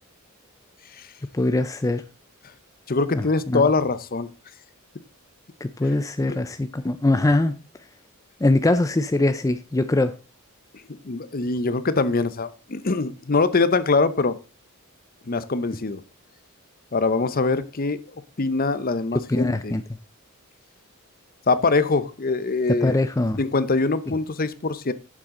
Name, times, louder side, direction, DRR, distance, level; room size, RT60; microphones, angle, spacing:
voice 1, 1.3-2.0 3.1-3.7 5.6-7.6 8.4-10.1 19.3-19.8 22.8-23.4, left 2 dB, 15° left, 0.4 m, -22 dB
voice 2, 2.9-4.3 6.2-6.4 11.0-14.4 15.3-16.0 16.9-18.0 18.4-19.8 21.5-23.0 23.4-24.9, left 3 dB, 45° left, 0.8 m, -23 dB
10.5 x 7.4 x 3.7 m
head